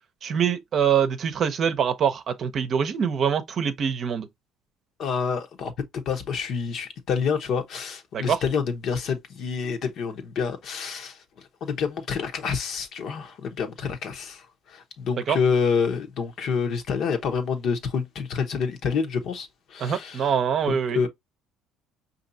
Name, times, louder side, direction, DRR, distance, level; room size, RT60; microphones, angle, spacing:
voice 1, 0.2-4.3 8.1-8.4 15.3-15.4 19.8-21.0, right 7 dB, 50° right, 0.7 m, -24 dB
voice 2, 5.0-11.2 11.6-20.3 20.7-21.1, left 6 dB, 55° left, 1.0 m, -28 dB
5.2 x 2.7 x 2.7 m
supercardioid pair, 100°, 0 cm